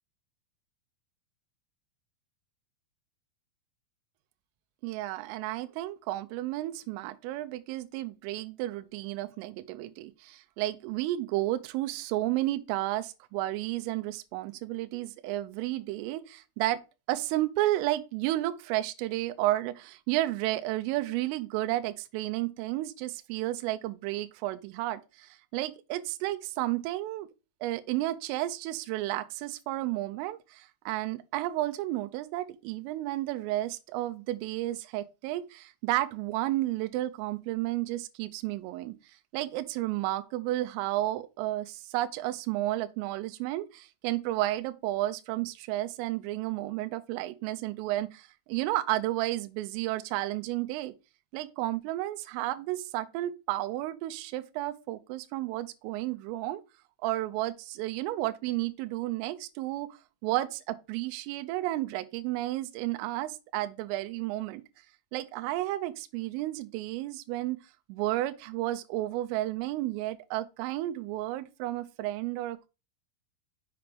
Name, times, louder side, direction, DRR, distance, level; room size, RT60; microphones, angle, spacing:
voice 1, 4.8-16.8 17.1-27.3 27.6-38.9 39.3-50.9 51.3-56.6 57.0-59.9 60.2-64.6 65.1-67.6 67.9-72.7, right 16 dB, 85° right, 3.1 m, -32 dB
6.8 x 6.0 x 3.3 m
omnidirectional pair, 6.0 m